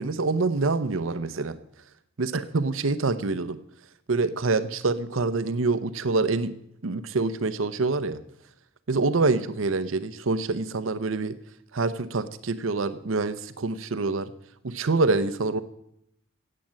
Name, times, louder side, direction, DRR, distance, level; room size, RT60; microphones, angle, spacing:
voice 1, 0.0-1.6 2.2-3.6 4.1-6.5 6.8-8.2 8.9-11.4 11.7-14.3 14.6-15.6, right 3 dB, 90° right, 13 dB, 0.7 m, -26 dB
16.5 x 8.5 x 7.5 m, 0.77 s
head